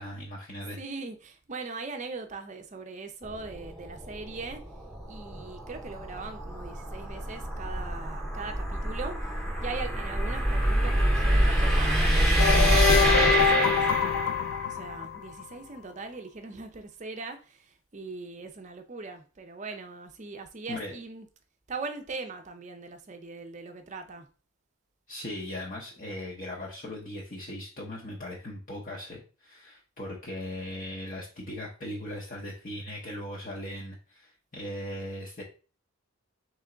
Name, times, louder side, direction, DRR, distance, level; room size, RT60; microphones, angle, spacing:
voice 1, 0.0-0.8 20.7-21.0 25.1-35.4, left 1 dB, 40° left, 0.7 m, -38 dB
voice 2, 0.7-4.6 5.1-9.3 9.6-14.3 14.7-21.3 21.7-24.3, right 3 dB, 35° right, 0.5 m, -40 dB
sound 1, 3.2-14.6, right 1 dB, ahead, 0.8 m, -26 dB
sound 2, 12.4-15.4, left 7 dB, 70° left, 0.3 m, -25 dB
3.4 x 3.1 x 3.8 m
head